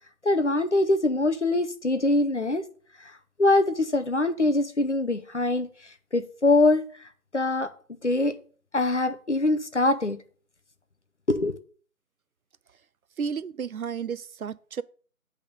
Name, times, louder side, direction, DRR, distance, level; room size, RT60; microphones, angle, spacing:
voice 1, 0.2-2.6 3.0-3.1 3.4-5.7 6.1-6.8 7.3-7.7 8.0-8.4 8.7-10.2 11.3-11.6, left 2 dB, 50° left, 0.7 m, -23 dB
voice 2, 13.2-14.8, right 6 dB, 70° right, 0.5 m, -32 dB
8.3 x 3.7 x 6.5 m
figure-of-eight pair, 170°, 44 cm